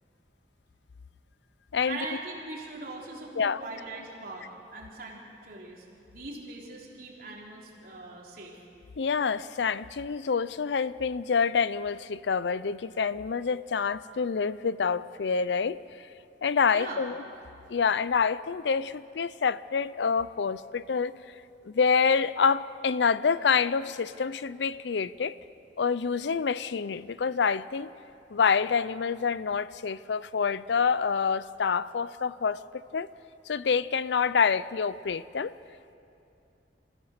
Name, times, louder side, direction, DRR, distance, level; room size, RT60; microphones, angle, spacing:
voice 1, 1.9-5.9 6.1-8.6 16.7-17.0, right 2 dB, 55° right, -3 dB, 3.9 m, -41 dB
voice 2, 9.0-15.8 16.4-17.2 17.7-21.1 21.6-25.3 25.8-27.9 28.3-32.6 32.9-33.1 33.5-35.5, left 6 dB, 75° left, 17 dB, 0.5 m, -27 dB
27.0 x 15.5 x 6.7 m, 2.7 s
head